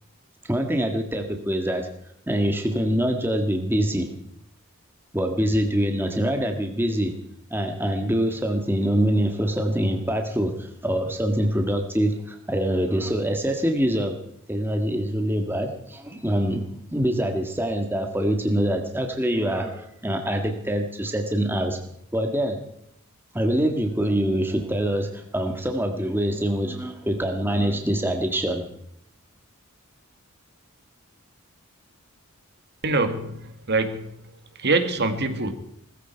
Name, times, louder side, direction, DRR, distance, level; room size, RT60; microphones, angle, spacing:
voice 1, 0.4-1.9 2.3-4.1 5.1-7.2 7.5-14.2 14.5-21.8 22.1-22.6 23.3-28.6, equal, 10° right, 4 dB, 1.6 m, -24 dB
voice 2, 32.8-35.5, right 3 dB, 50° right, 8 dB, 1.9 m, -25 dB
20.0 x 14.5 x 4.5 m, 0.73 s
head